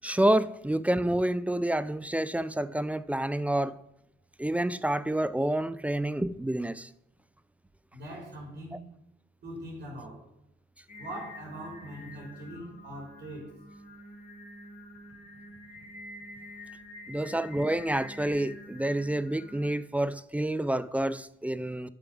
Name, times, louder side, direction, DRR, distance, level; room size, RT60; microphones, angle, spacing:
voice 1, 0.0-3.8 4.4-6.9 17.1-21.9, right 1 dB, 5° right, 0.4 m, -28 dB
voice 2, 7.9-8.8 9.4-10.2 11.0-13.5, right 1 dB, 60° right, 3.5 m, -41 dB
Singing, 10.9-19.7, left 1 dB, 40° left, 3.2 m, -47 dB
7.0 x 7.0 x 6.2 m
cardioid pair, 90°, 20 cm